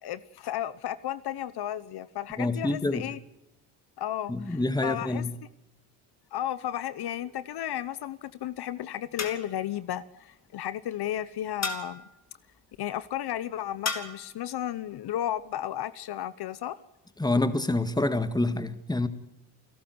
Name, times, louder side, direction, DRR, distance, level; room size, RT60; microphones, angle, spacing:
voice 1, 0.0-3.2 4.0-5.2 6.3-12.0 12.8-16.8, left 11 dB, 65° left, 1.0 m, -33 dB
voice 2, 2.4-3.0 4.3-5.3 17.2-19.1, left 2 dB, 10° left, 1.9 m, -27 dB
sound 1, 7.0-7.5 9.2-9.7 11.6-12.1 13.9-14.3, left 4 dB, 40° left, 3.3 m, -35 dB
28.5 x 12.5 x 9.6 m
cardioid pair, 90°, 41 cm